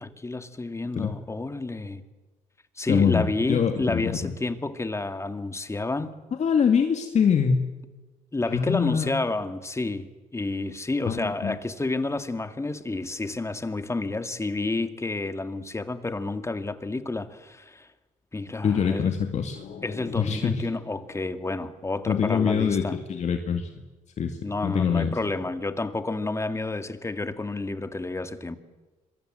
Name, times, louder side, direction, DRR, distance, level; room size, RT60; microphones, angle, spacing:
voice 1, 0.0-2.0 2.8-6.2 8.3-17.9 18.3-19.2 19.8-23.0 24.4-28.6, left 2 dB, 20° left, 2.0 m, -30 dB
voice 2, 2.9-4.3 6.4-7.6 8.5-9.1 11.1-11.6 18.6-19.6 20.1-20.5 22.1-22.8 23.1-23.7 24.2-24.4 24.6-25.2, left 7 dB, 55° left, 2.3 m, -24 dB
sound 1, 19.6-22.3, left 7 dB, 75° left, 4.8 m, -45 dB
26.0 x 23.0 x 7.8 m
cardioid pair, 80°, 14 cm